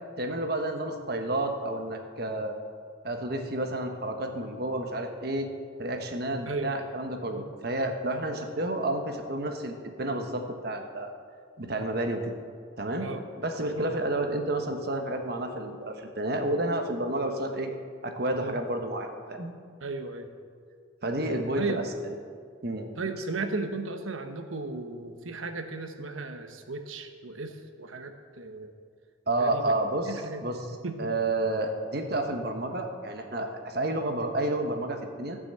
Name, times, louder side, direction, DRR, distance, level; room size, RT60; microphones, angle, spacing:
voice 1, 0.2-2.6 3.0-5.5 5.8-11.1 11.6-12.3 12.8-13.1 13.4-17.7 18.0-19.5 21.0-22.2 22.6-22.9 29.3-30.7 31.0-35.4, right 1 dB, 50° right, 4 dB, 1.2 m, -30 dB
voice 2, 6.5-6.8 7.3-7.5 13.0-13.2 13.8-13.9 18.4-18.5 19.8-20.3 21.6-21.8 23.0-28.7 29.4-29.7 30.1-30.4 30.8-31.0, right 3 dB, 90° right, 7 dB, 1.1 m, -35 dB
15.0 x 6.2 x 7.6 m, 2.1 s
head